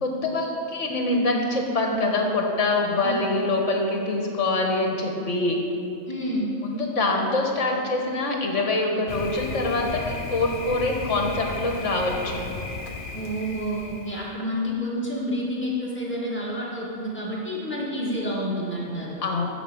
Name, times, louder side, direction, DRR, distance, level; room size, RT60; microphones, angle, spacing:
voice 1, 0.0-5.6 6.6-12.4 19.2-19.5, left 2 dB, 60° left, 1 dB, 1.6 m, -25 dB
voice 2, 6.1-6.5 13.1-19.2, equal, 10° left, -6 dB, 2.1 m, -29 dB
Thunder, 9.1-14.4, left 4 dB, 45° left, 0.8 m, -35 dB
12.0 x 4.9 x 7.1 m, 2.6 s
omnidirectional pair, 1.4 m